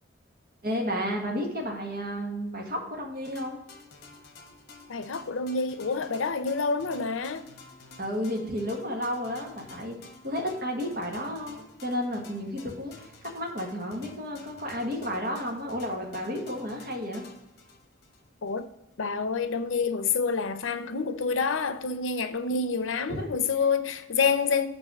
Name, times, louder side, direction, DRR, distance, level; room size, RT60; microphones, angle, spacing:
voice 1, 0.6-3.6 8.0-10.0 10.2-17.3 23.1-23.3, equal, 50° right, 1.7 m, -32 dB
sound 1, 3.2-18.7, left 3 dB, 55° left, 1.2 m, -51 dB
voice 2, 4.9-7.5 18.4-18.7 19.0-24.7, left 5 dB, 85° left, 0.6 m, -28 dB
6.2 x 4.7 x 6.3 m
head